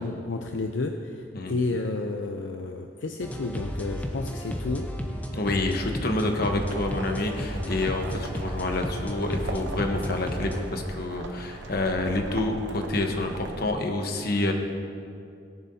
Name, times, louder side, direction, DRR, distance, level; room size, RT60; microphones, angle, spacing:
voice 1, 0.0-4.9, left 3 dB, 80° left, 4 dB, 0.6 m, -31 dB
sound 1, 3.2-10.7, equal, 10° left, 0.8 m, -33 dB
voice 2, 5.3-14.5, left 2 dB, 55° left, 3 dB, 1.1 m, -28 dB
sound 2, 6.5-13.7, right 1 dB, 75° right, 0.9 m, -39 dB
18.0 x 10.5 x 2.8 m, 2.4 s
head